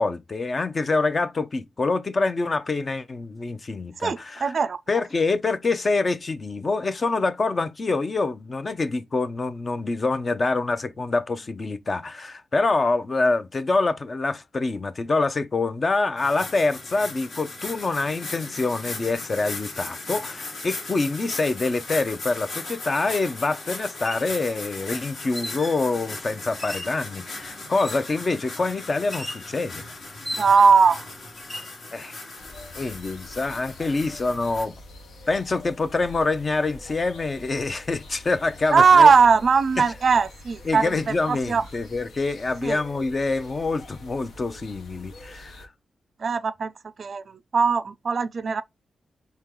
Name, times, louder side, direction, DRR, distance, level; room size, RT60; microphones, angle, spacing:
voice 1, 0.0-4.5 4.9-29.8 31.9-32.1 32.8-34.7 35.3-39.1 39.8-39.9 40.6-45.7, left 3 dB, 40° left, 0.5 m, -26 dB
voice 2, 4.0-4.8 30.4-31.0 38.7-40.9 41.3-41.6 42.6-42.8 46.2-46.7 47.0-47.2 47.5-48.6, right 5 dB, 55° right, 0.3 m, -19 dB
sound 1, 16.2-34.7, left 2 dB, 70° left, 1.4 m, -37 dB
sound 2, 22.9-23.1 23.9-24.3 25.3-25.9 26.6-27.0 27.8-28.2 29.1-29.5 30.2-30.8 31.4-31.7, equal, 10° left, 1.0 m, -36 dB
sound 3, 32.4-45.7, left 2 dB, 90° left, 0.9 m, -45 dB
4.5 x 2.8 x 3.6 m
cardioid pair, 85°, 0 cm